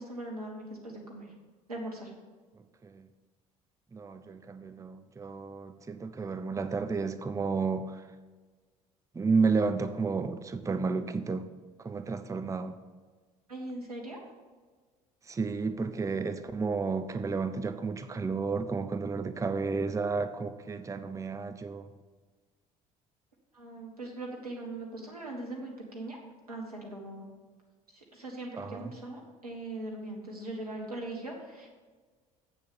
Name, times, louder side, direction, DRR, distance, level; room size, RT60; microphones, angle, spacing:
voice 1, 0.0-1.3 1.7-2.1 13.5-14.2 23.5-26.2 26.5-27.3 27.9-31.7, right 2 dB, 90° right, 0 dB, 1.6 m, -40 dB
voice 2, 3.9-8.0 9.1-11.5 11.8-12.8 15.3-21.9 28.5-28.9, right 4 dB, 15° right, 10 dB, 0.6 m, -32 dB
8.1 x 6.7 x 6.9 m, 1.4 s
figure-of-eight pair, 60°, 19 cm